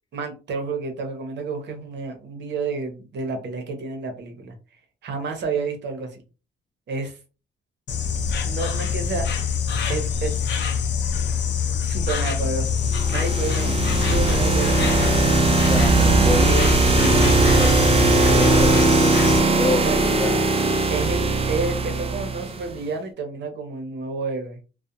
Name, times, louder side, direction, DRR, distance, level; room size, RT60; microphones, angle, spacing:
voice 1, 0.1-4.5 5.0-6.2 6.9-7.2 8.4-9.3 9.9-10.4 11.8-12.8 13.1-14.9 19.8-20.0 20.9-24.6, right 4 dB, 65° right, 4 dB, 0.8 m, -30 dB
Insect, 7.9-19.4, left 6 dB, 65° left, 0.6 m, -24 dB
sound 1, 12.9-22.7, right 3 dB, 30° right, 0.5 m, -19 dB
voice 2, 15.6-20.4, left 2 dB, 25° left, 5 dB, 0.6 m, -28 dB
2.4 x 2.1 x 2.7 m, 0.33 s
cardioid pair, 90°, 20 cm